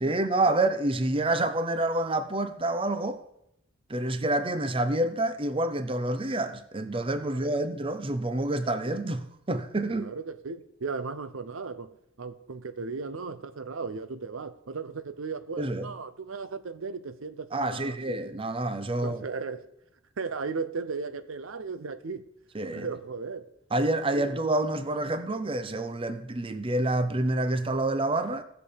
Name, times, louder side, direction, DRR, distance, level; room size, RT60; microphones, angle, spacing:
voice 1, 0.0-3.2 3.9-10.1 15.6-15.9 17.5-19.2 22.5-22.9 23.7-28.4, right 2 dB, 25° right, 0.7 m, -28 dB
voice 2, 7.2-7.7 9.9-18.3 19.0-19.7 20.2-22.2 22.7-23.5 24.1-24.4, right 4 dB, 75° right, 0.7 m, -36 dB
16.0 x 6.9 x 5.1 m
head